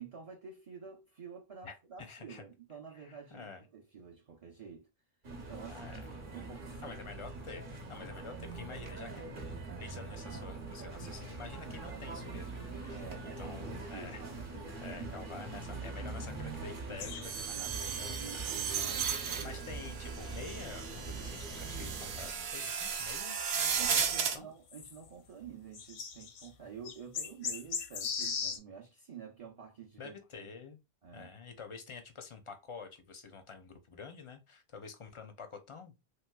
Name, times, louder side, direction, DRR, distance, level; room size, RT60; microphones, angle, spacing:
voice 1, 0.0-4.9 5.4-5.8 6.2-7.0 12.9-14.5 18.7-19.6 23.8-30.5 31.0-31.3, right 6 dB, 40° right, 0.6 m, -49 dB
voice 2, 1.6-2.4 2.9-3.6 5.7-6.0 6.8-9.3 9.8-14.2 14.5-18.5 19.0-23.4 23.8-24.5 30.0-30.8 31.1-35.9, left 5 dB, 45° left, 0.4 m, -48 dB
sound 1, 5.2-22.3, right 3 dB, 55° right, 0.9 m, -43 dB
sound 2, 17.0-17.8 18.1-18.2 18.8-18.9 19.3-19.4 20.3-20.4 21.3-22.2 22.9-23.7 24.2-24.3 24.7-25.1 25.4-25.5 25.7-26.5 26.9-28.6, left 6 dB, 85° left, 0.8 m, -39 dB
sound 3, 17.2-24.4, right 7 dB, 75° right, 0.8 m, -35 dB
3.2 x 3.0 x 2.2 m
omnidirectional pair, 1.1 m